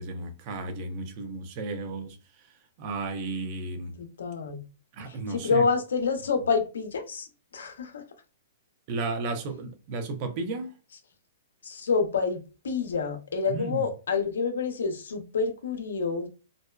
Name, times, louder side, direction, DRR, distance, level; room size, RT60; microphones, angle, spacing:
voice 1, 0.0-2.2 2.8-3.9 4.9-5.7 8.9-10.7 13.5-13.9, right 3 dB, 40° right, 0.6 m, -33 dB
voice 2, 4.0-4.6 5.1-7.3 7.5-8.0 11.6-16.3, left 5 dB, 90° left, 0.6 m, -28 dB
2.5 x 2.2 x 2.2 m
hypercardioid pair, 145°, 0 cm